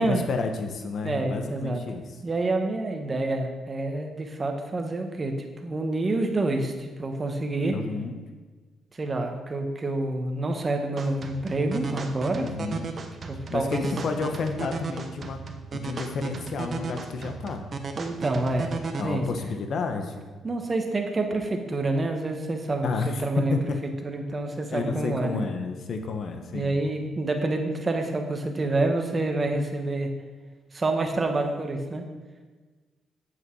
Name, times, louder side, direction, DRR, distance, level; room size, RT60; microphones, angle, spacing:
voice 1, 0.0-2.0 7.7-8.2 12.4-12.9 13.5-15.4 15.7-17.6 19.0-20.3 22.8-23.8 24.7-26.8, left 4 dB, 60° left, 5 dB, 1.2 m, -31 dB
voice 2, 1.0-1.8 2.2-5.3 5.6-7.7 8.9-12.5 13.3-13.8 18.0-18.8 19.0-19.2 20.4-23.7 24.0-25.4 26.5-30.1 30.7-32.0, right 2 dB, 30° right, 4 dB, 1.4 m, -27 dB
sound 1, 11.0-19.0, right 4 dB, 45° right, 1.0 m, -35 dB
8.2 x 8.1 x 4.8 m, 1.3 s
cardioid pair, 90°, 0 cm